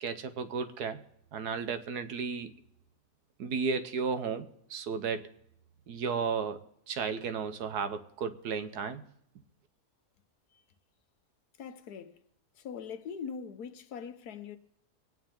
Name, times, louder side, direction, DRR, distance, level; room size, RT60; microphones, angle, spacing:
voice 1, 0.0-1.0 1.3-2.5 3.4-5.3 5.9-6.6 6.9-9.0, right 5 dB, 85° right, 1.5 m, -34 dB
voice 2, 11.6-12.2 12.6-14.6, left 6 dB, 80° left, 1.4 m, -42 dB
23.5 x 9.3 x 3.7 m
omnidirectional pair, 1.6 m